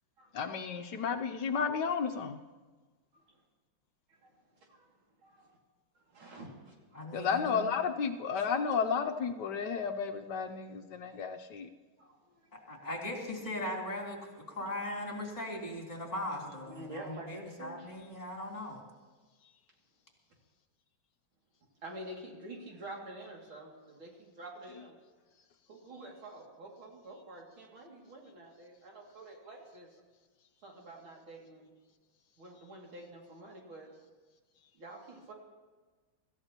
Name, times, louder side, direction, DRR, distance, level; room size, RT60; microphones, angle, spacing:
voice 1, 0.3-2.4 7.1-11.7, left 6 dB, 65° left, 6 dB, 1.2 m, -32 dB
voice 2, 5.2-5.5 5.9-7.0 12.0-12.5 16.7-17.9 21.8-25.0 25.7-29.9 30.6-31.7 32.4-33.9 34.7-35.3, right 1 dB, 85° right, -1 dB, 3.3 m, -48 dB
voice 3, 6.9-7.6 12.5-18.8, left 1 dB, 20° left, -3 dB, 3.4 m, -39 dB
25.0 x 14.5 x 2.9 m, 1.3 s
omnidirectional pair, 2.2 m